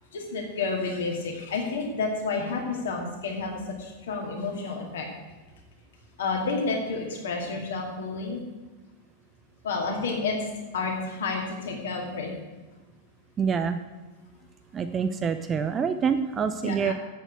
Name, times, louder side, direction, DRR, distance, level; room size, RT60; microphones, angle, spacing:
voice 1, 0.1-5.1 6.2-8.4 9.6-10.4 10.7-12.4 16.6-16.9, left 4 dB, 60° left, 0 dB, 2.4 m, -30 dB
voice 2, 13.4-13.8 14.7-16.9, right 6 dB, 25° right, 9 dB, 0.5 m, -26 dB
8.2 x 7.5 x 7.8 m, 1.2 s
figure-of-eight pair, 90°, 0 cm